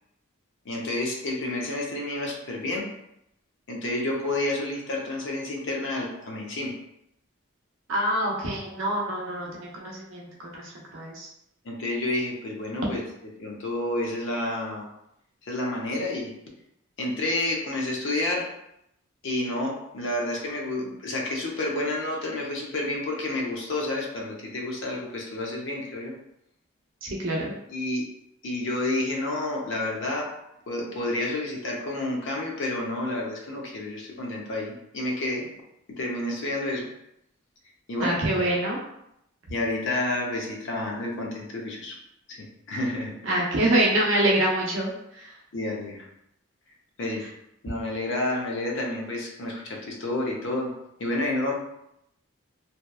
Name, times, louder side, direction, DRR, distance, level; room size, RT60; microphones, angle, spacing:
voice 1, 0.7-2.9 3.7-6.7 11.6-13.0 13.4-14.9 15.4-16.3 17.0-18.5 19.2-26.2 27.7-28.1 28.4-30.3 30.7-35.5 35.9-36.9 37.9-38.3 39.5-42.0 42.3-43.1 45.5-46.1 47.0-47.3 47.6-50.7 51.0-51.5, left 2 dB, 60° left, 0 dB, 0.5 m, -30 dB
voice 2, 7.9-11.3 27.0-27.5 38.0-38.8 43.2-45.3, right 1 dB, 60° right, -2 dB, 0.6 m, -26 dB
2.7 x 2.2 x 2.2 m, 0.79 s
head